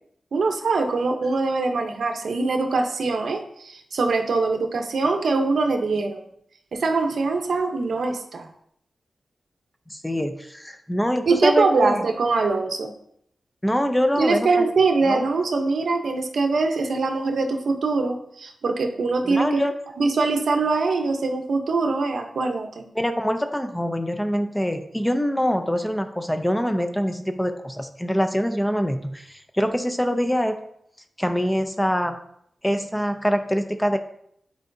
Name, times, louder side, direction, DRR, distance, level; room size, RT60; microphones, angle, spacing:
voice 1, 0.3-6.2 6.7-8.5 11.3-12.9 14.2-19.6 20.0-22.8, right 3 dB, 70° right, 4 dB, 0.8 m, -23 dB
voice 2, 9.9-12.0 13.6-14.6 15.0-15.3 19.2-19.7 23.0-30.6 31.2-32.2 32.6-34.0, equal, 5° left, 7 dB, 0.4 m, -24 dB
9.0 x 4.6 x 2.7 m, 0.71 s
wide cardioid pair, 135°, 0 cm